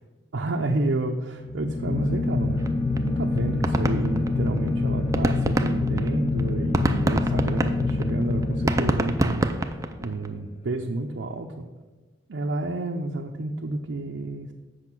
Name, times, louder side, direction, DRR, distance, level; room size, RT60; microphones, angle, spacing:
voice 1, 0.3-2.7 3.0-11.7 12.3-14.5, right 2 dB, 80° right, 1 dB, 0.6 m, -30 dB
sound 1, 1.4-9.7, left 2 dB, 35° left, 0.5 m, -26 dB
Bowed string instrument, 2.3-6.4, right 1 dB, 10° left, 2.3 m, -42 dB
sound 2, 2.7-2.8 3.0-3.1 3.4-4.7 5.0-10.3, right 1 dB, 15° right, 0.4 m, -26 dB
8.0 x 6.3 x 6.0 m, 1.3 s
head